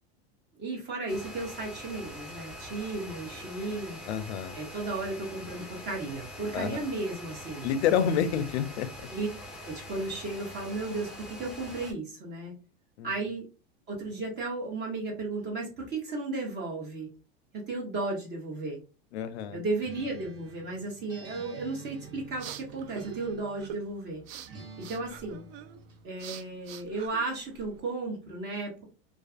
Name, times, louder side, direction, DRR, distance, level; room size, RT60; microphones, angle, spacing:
voice 1, 0.6-4.0 4.5-7.7 9.1-9.3 9.6-12.5 13.0-13.5 13.9-17.1 17.5-18.8 19.5-24.2 24.8-25.4 26.0-28.8, right 3 dB, 35° right, -1 dB, 0.7 m, -34 dB
sound 1, 1.1-11.9, left 1 dB, ahead, 0.5 m, -44 dB
voice 2, 4.1-4.6 6.5-6.8 7.6-8.9 13.0-13.1 19.1-19.6, left 8 dB, 90° left, 13 dB, 0.5 m, -28 dB
Acoustic guitar, 19.8-23.9 24.5-26.0, right 4 dB, 80° right, 1.2 m, -49 dB
sound 2, 21.9-27.8, right 9 dB, 65° right, 0.4 m, -45 dB
2.4 x 2.4 x 2.3 m, 0.32 s
supercardioid pair, 130°, 32 cm